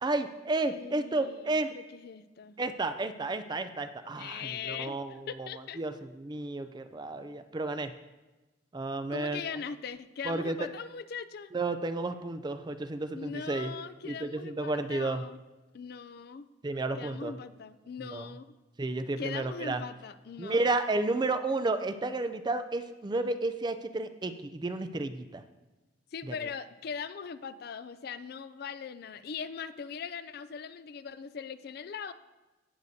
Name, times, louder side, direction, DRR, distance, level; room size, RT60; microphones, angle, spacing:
voice 1, 0.0-1.7 2.6-5.5 5.8-7.9 8.7-9.4 10.3-10.7 11.5-13.7 14.0-15.2 16.6-17.3 18.1-18.3 18.8-19.8 20.4-25.4 26.3-26.4, right 2 dB, 25° right, 9 dB, 0.4 m, -32 dB
voice 2, 0.7-2.5 4.2-5.8 9.1-11.5 13.1-15.4 15.7-16.5 16.9-18.6 19.2-20.6 26.1-32.1, left 6 dB, 55° left, 13 dB, 0.4 m, -40 dB
17.5 x 6.6 x 2.7 m, 1.1 s
head